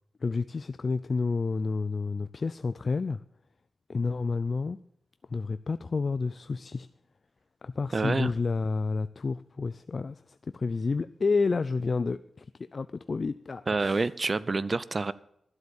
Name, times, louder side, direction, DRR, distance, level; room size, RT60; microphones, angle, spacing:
voice 1, 0.2-3.2 3.9-4.8 5.3-6.9 7.6-12.5 12.7-14.0, left 4 dB, 50° left, 0.4 m, -30 dB
voice 2, 7.9-8.3 13.7-15.1, right 3 dB, 45° right, 0.6 m, -27 dB
12.0 x 8.0 x 7.1 m
cardioid pair, 65°, 0 cm